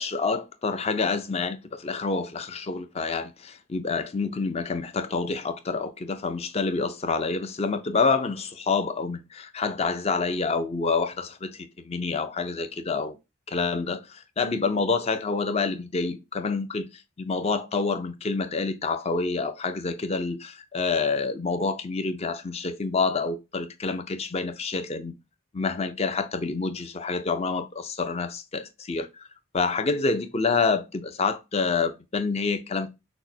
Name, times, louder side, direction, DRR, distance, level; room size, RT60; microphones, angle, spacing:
voice 1, 0.0-13.2 13.5-25.1 25.5-29.3 29.5-32.9, left 4 dB, 30° left, 0.5 m, -27 dB
6.0 x 2.1 x 2.7 m
head